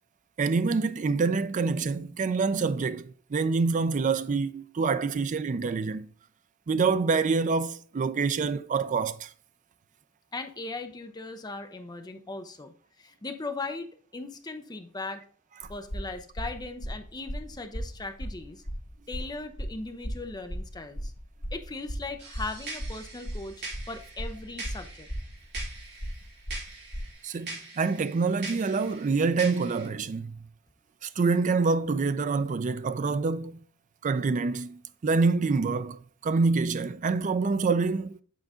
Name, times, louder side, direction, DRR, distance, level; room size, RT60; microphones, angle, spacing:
voice 1, 0.4-6.1 6.7-9.3 27.2-30.4 31.0-33.6 34.0-38.2, right 4 dB, 35° right, 0.4 m, -26 dB
voice 2, 10.3-15.2 15.7-18.6 19.1-21.1 21.5-25.1 27.3-27.4, left 3 dB, 20° left, 0.6 m, -38 dB
sound 1, 15.6-27.1, equal, 45° left, 2.1 m, -36 dB
sound 2, 22.2-29.9, right 2 dB, 55° right, 3.1 m, -43 dB
8.3 x 3.9 x 3.7 m
head